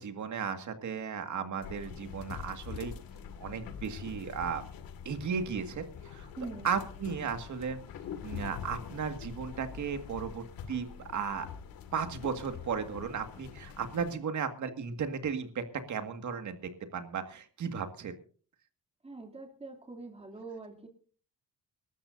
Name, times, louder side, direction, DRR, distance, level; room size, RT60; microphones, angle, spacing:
voice 1, 0.0-3.0 3.4-4.6 5.1-6.3 6.6-7.8 8.2-11.5 11.9-18.2, right 6 dB, 55° right, 7 dB, 2.0 m, -35 dB
sound 1, 1.6-14.2, left 7 dB, 80° left, 2.1 m, -44 dB
voice 2, 6.4-6.7 19.0-20.9, right 3 dB, 15° right, 2 dB, 2.8 m, -43 dB
24.5 x 13.0 x 2.7 m, 0.43 s
cardioid pair, 115°, 35 cm